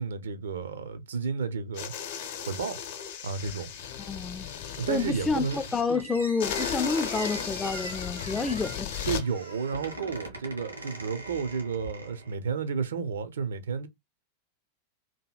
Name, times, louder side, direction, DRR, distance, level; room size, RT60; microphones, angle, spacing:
voice 1, 0.0-1.9 2.4-2.8 3.2-3.7 4.8-5.6 9.1-13.9, right 5 dB, 65° right, 0.5 m, -32 dB
sound 1, 1.7-5.8 6.4-9.2, left 8 dB, 55° left, 0.6 m, -35 dB
voice 2, 4.1-4.5 4.9-8.9, left 4 dB, 10° left, 0.3 m, -29 dB
Squeak, 5.5-12.4, right 2 dB, 80° right, 1.2 m, -42 dB
2.8 x 2.7 x 2.2 m
figure-of-eight pair, 90°, 0 cm